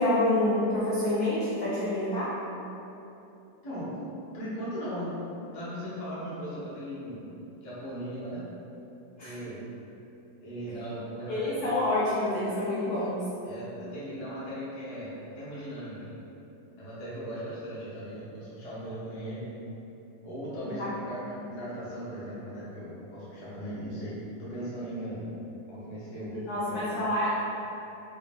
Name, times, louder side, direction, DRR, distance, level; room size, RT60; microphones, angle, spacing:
voice 1, 0.0-2.4 9.2-9.4 11.3-13.2 20.7-20.9 21.2-21.3 26.5-27.4, left 1 dB, 75° left, -9 dB, 0.8 m, -27 dB
voice 2, 4.3-5.1 5.5-8.4 9.2-9.7 10.4-11.7 13.4-16.1 16.8-19.5 20.2-25.2 25.7-26.3 26.6-26.9, equal, 40° left, -10 dB, 0.5 m, -38 dB
4.7 x 2.0 x 3.7 m, 3.0 s
omnidirectional pair, 2.4 m